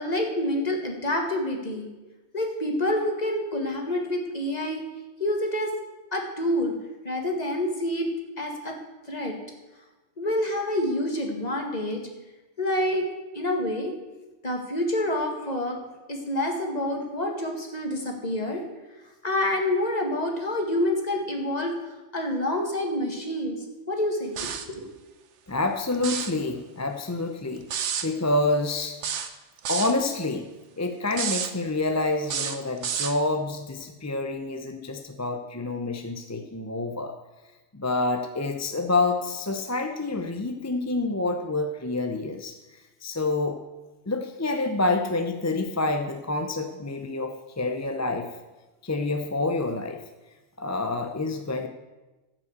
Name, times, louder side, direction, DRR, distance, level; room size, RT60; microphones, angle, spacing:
voice 1, 0.0-1.9 2.3-4.8 5.2-5.7 6.1-6.7 7.0-8.1 8.4-8.8 9.1-9.3 10.2-12.0 12.6-13.1 13.3-13.9 14.4-15.8 16.1-18.6 19.2-21.8 22.1-23.6 23.9-24.9, left 1 dB, 35° left, 2 dB, 2.0 m, -27 dB
sound 1, 24.4-24.7 25.9-26.4 27.7-28.1 29.0-30.0 31.1-31.5 32.2-33.2, right 7 dB, 75° right, 1.2 m, -30 dB
voice 2, 25.5-29.0 29.7-30.5 30.8-37.2 37.7-43.6 44.1-48.3 48.8-50.0 50.6-51.7, left 2 dB, 20° left, 5 dB, 0.6 m, -28 dB
14.0 x 6.0 x 8.0 m, 1.1 s
omnidirectional pair, 1.2 m